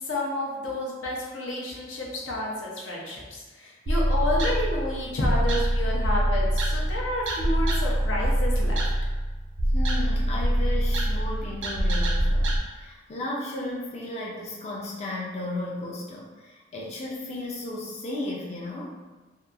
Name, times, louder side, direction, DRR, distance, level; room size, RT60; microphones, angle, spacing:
voice 1, 0.1-8.8, left 1 dB, 90° left, -4 dB, 0.7 m, -30 dB
sound 1, 3.9-12.6, right 1 dB, 85° right, 0.4 m, -24 dB
voice 2, 9.7-18.9, left 2 dB, 35° left, -4 dB, 0.4 m, -34 dB
2.8 x 2.2 x 2.4 m, 1.2 s
head